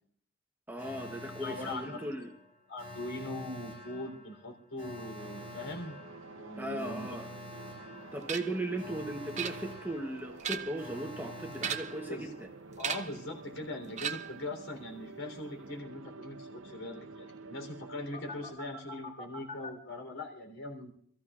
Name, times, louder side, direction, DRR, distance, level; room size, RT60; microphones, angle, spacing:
voice 1, 0.7-2.3 6.6-7.3 8.1-12.5, right 1 dB, 10° right, 3 dB, 0.9 m, -37 dB
Alarm, 0.8-12.7 18.1-19.7, left 1 dB, 35° left, 3.7 m, -47 dB
voice 2, 1.4-2.3 2.7-6.0 6.4-7.1 12.1-12.3 12.8-20.9, left 2 dB, 70° left, 1 dB, 3.7 m, -41 dB
sound 1, 5.2-18.6, right 3 dB, 65° right, 0.8 m, -49 dB
sound 2, 8.3-8.6 9.4-9.9 10.3-10.9 11.5-12.1 12.8-13.2 14.0-14.5, right 8 dB, 35° right, 0.6 m, -37 dB
27.0 x 14.5 x 2.5 m, 0.64 s
head